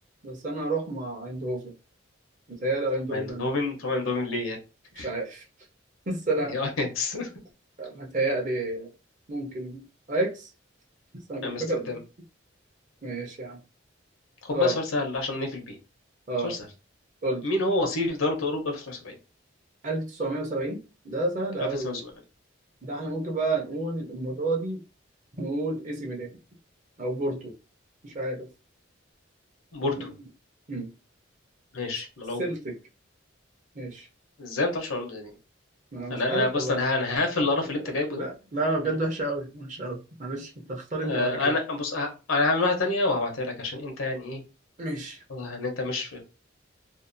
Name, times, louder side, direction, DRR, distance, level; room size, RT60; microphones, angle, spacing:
voice 1, 0.2-1.7 2.5-3.5 5.0-5.4 6.1-6.6 7.8-8.9 9.3-9.8 10.1-10.5 11.3-11.8 13.0-13.6 14.5-14.7 16.3-16.5 17.2-17.5 19.8-22.0 22.8-24.8 25.4-26.3 27.0-27.5 28.0-28.5 30.0-30.1 30.7-30.9 32.4-32.8 33.8-34.1 35.9-36.8 38.1-41.5 44.8-45.2, right 2 dB, 40° right, 1 dB, 0.6 m, -30 dB
voice 2, 3.1-4.6 5.0-5.1 6.5-7.3 11.4-12.0 14.4-15.8 16.4-16.6 17.4-19.2 21.6-22.1 29.7-30.1 31.7-32.4 34.4-35.3 36.1-38.3 38.9-39.0 41.0-44.4 45.3-46.2, left 2 dB, 85° left, 3 dB, 0.8 m, -28 dB
2.6 x 2.1 x 2.5 m, 0.31 s
head